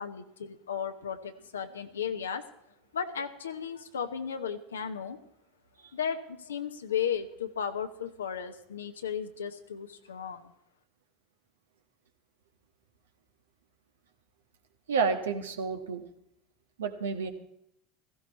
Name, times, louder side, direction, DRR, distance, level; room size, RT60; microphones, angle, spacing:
voice 1, 0.0-2.4 2.9-5.2 5.9-10.5, left 7 dB, 75° left, 7 dB, 1.0 m, -35 dB
voice 2, 14.9-16.0 16.8-17.3, right 5 dB, 70° right, 6 dB, 1.4 m, -30 dB
16.0 x 15.0 x 4.2 m, 0.76 s
figure-of-eight pair, 75°, 0 cm